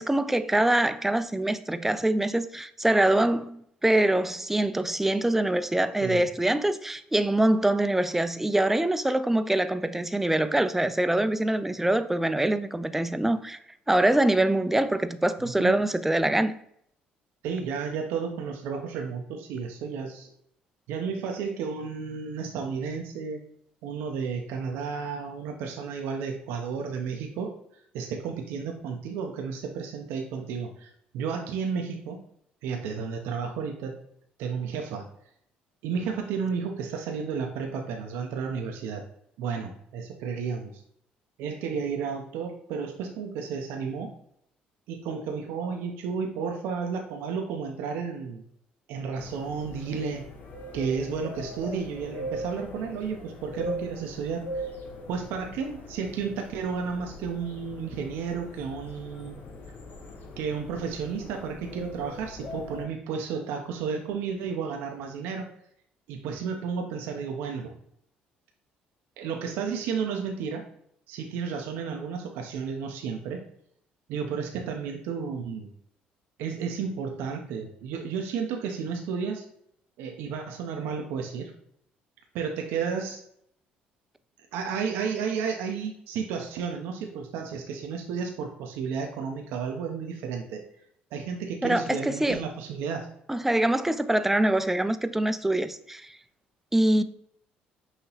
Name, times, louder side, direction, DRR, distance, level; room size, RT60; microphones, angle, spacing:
voice 1, 0.0-13.6 13.9-16.5 91.6-92.4 93.3-96.1 96.7-97.0, right 1 dB, 10° right, 0.3 m, -24 dB
voice 2, 15.4-15.9 17.4-20.3 20.9-23.4 23.8-27.5 27.9-32.2 32.6-34.0 34.4-35.1 35.8-39.0 39.4-40.8 41.4-44.1 44.9-48.4 48.9-50.3 50.7-54.7 55.1-59.4 60.4-65.5 66.1-67.7 69.2-70.6 71.1-73.4 74.1-75.7 76.4-79.4 80.0-81.5 82.3-83.2 84.5-90.6 91.1-93.1, right 6 dB, 80° right, 0.5 m, -32 dB
sound 1, 49.2-62.9, equal, 55° left, 0.8 m, -40 dB
5.5 x 2.8 x 2.8 m
supercardioid pair, 85°, 4 cm